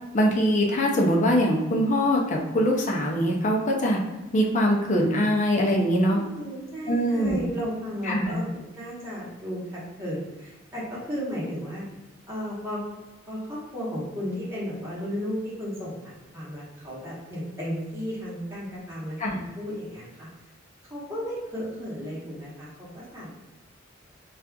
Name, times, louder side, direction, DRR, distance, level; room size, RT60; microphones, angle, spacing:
voice 1, 0.1-4.0 4.3-6.2 6.9-7.4 8.1-8.3 19.2-19.4, equal, 40° left, -1 dB, 0.5 m, -22 dB
voice 2, 6.1-11.8 12.3-12.8 13.3-20.3 20.9-23.3, equal, 15° right, -8 dB, 1.1 m, -34 dB
4.1 x 2.4 x 2.3 m, 1.1 s
head